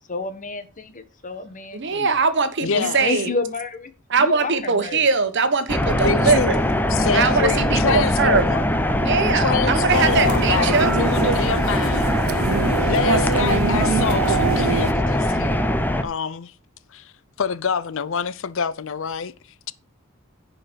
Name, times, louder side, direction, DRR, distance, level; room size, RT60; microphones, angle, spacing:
voice 1, 0.1-2.1 2.6-3.9 4.2-5.0 6.9-7.6 12.9-13.6, left 3 dB, 40° left, 1.4 m, -31 dB
voice 2, 1.7-3.3 4.1-6.6 7.1-8.5 9.0-10.9, right 4 dB, 60° right, 1.3 m, -21 dB
voice 3, 2.6-3.1 6.0-6.6 6.9-8.7 9.4-12.5 12.9-15.7 16.0-16.5 16.9-17.1 17.4-19.3, left 6 dB, 65° left, 0.6 m, -26 dB
sound 1, 5.7-16.0, left 1 dB, 10° left, 0.9 m, -21 dB
sound 2, 9.9-14.9, right 5 dB, 90° right, 0.7 m, -25 dB
10.5 x 5.1 x 6.3 m
head